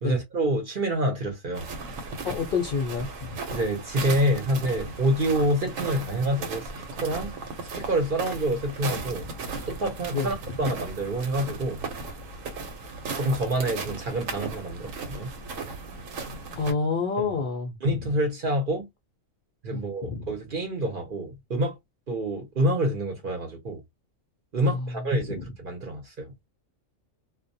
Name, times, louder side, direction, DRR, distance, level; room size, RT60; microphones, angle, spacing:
voice 1, 0.0-1.7 3.5-6.7 7.0-7.3 7.8-9.3 9.7-11.8 13.2-15.3 16.7-16.8 17.2-17.4 17.8-18.9 19.6-21.7 22.1-23.8 24.5-26.3, right 1 dB, 50° right, 0.8 m, -27 dB
sound 1, 1.5-16.7, right 3 dB, 80° right, 1.0 m, -36 dB
voice 2, 2.2-3.1 10.1-10.3 16.6-18.0 19.7-19.8 20.1-20.2 24.6-24.9 25.4-25.5, left 4 dB, 60° left, 0.5 m, -28 dB
2.3 x 2.1 x 2.5 m
omnidirectional pair, 1.3 m